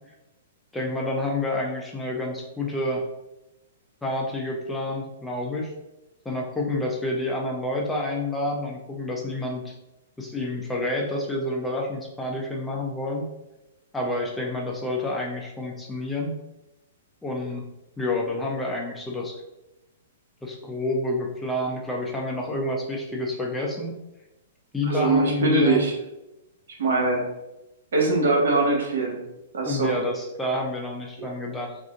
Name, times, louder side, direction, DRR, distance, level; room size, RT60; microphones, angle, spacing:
voice 1, 0.7-3.0 4.0-5.7 6.2-9.7 10.2-13.2 13.9-16.4 17.2-17.7 18.0-19.4 20.4-24.0 24.7-25.8 29.6-31.8, left 2 dB, 5° left, -1 dB, 0.5 m, -28 dB
voice 2, 24.9-25.9 26.8-27.2 27.9-29.2 29.5-29.9 31.2-31.3, right 3 dB, 75° right, -1 dB, 1.1 m, -22 dB
2.5 x 2.4 x 3.6 m, 0.95 s
hypercardioid pair, 140°, 0 cm